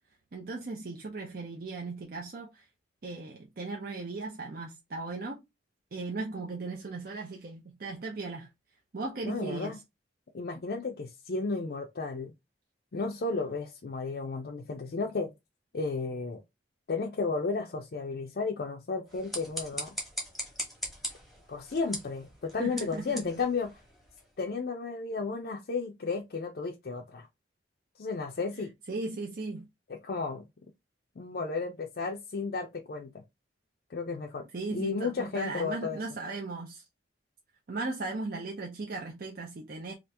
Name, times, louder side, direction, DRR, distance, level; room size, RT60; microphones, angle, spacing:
voice 1, 0.3-2.7 3.0-5.4 5.9-8.5 8.9-9.8 22.6-23.2 28.9-29.7 34.5-36.9 37.7-39.9, right 3 dB, 50° right, 0.5 m, -37 dB
voice 2, 9.2-9.8 10.3-12.3 12.9-15.3 15.7-16.4 16.9-20.0 21.5-23.7 24.4-27.3 28.0-28.7 29.9-30.4 31.2-33.2 33.9-36.0, left 4 dB, 55° left, 0.4 m, -33 dB
sound 1, 19.0-24.3, equal, ahead, 0.9 m, -40 dB
2.9 x 2.4 x 3.3 m
head